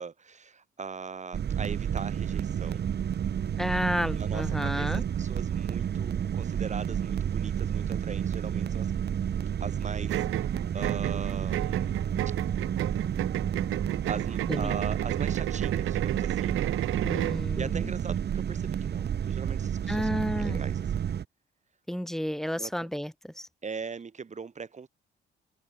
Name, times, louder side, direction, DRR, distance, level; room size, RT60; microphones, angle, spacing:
voice 1, 0.0-2.9 4.1-8.9 9.6-12.3 14.1-16.6 17.5-21.1 22.5-22.9 23.6-24.9, right 5 dB, 35° right, 5.9 m, -40 dB
sound 1, 1.3-21.3, right 9 dB, 55° right, 2.5 m, -30 dB
voice 2, 3.6-5.0 14.5-14.8 17.0-17.9 19.9-20.6 21.9-23.5, equal, ahead, 2.7 m, -31 dB
sound 2, 10.1-17.4, right 15 dB, 90° right, 3.2 m, -32 dB
cardioid pair, 90°, 20 cm